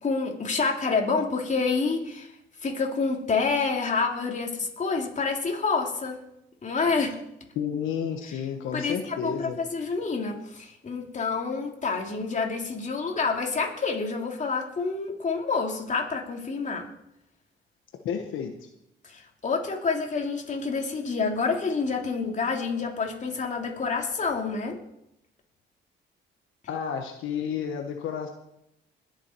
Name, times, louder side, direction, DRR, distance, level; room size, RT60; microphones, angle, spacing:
voice 1, 0.0-2.3 2.6-6.2 6.6-7.1 8.3-8.4 8.7-16.9 19.0-24.8, left 4 dB, 40° left, 1 dB, 3.1 m, -28 dB
voice 2, 7.5-9.6 18.0-18.5 26.7-28.3, left 7 dB, 85° left, 4 dB, 1.3 m, -31 dB
21.0 x 7.4 x 4.6 m, 0.80 s
cardioid pair, 90°, 20 cm